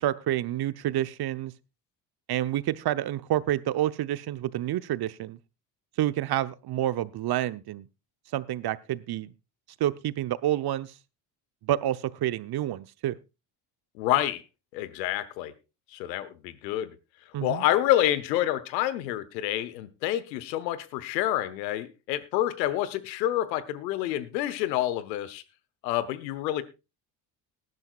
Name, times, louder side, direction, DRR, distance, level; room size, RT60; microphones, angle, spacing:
voice 1, 0.0-1.5 2.3-5.4 6.0-7.8 8.3-9.3 9.8-10.9 11.6-13.2 17.3-17.7, right 13 dB, 50° right, 0.9 m, -28 dB
voice 2, 14.0-14.4 14.7-15.5 15.9-16.9 17.4-25.4 25.8-26.6, left 13 dB, 85° left, 1.0 m, -28 dB
19.0 x 11.0 x 2.4 m
hypercardioid pair, 65°, 49 cm